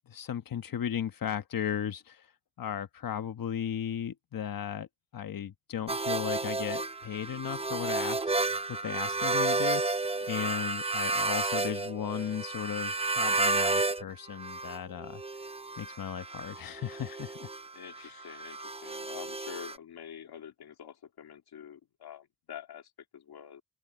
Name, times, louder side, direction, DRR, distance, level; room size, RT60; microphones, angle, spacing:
voice 1, 0.1-2.3 2.6-4.9 5.1-8.4 8.7-10.0 10.3-15.2 15.8-17.5 18.0-18.2, left 9 dB, 65° left, 1.3 m, -36 dB
sound 1, 5.9-14.0 14.3-19.7, right 3 dB, 15° right, 0.8 m, -31 dB
voice 2, 10.1-10.6 17.7-23.6, left 9 dB, 80° left, 2.5 m, -47 dB
open air
cardioid pair, 75°, 37 cm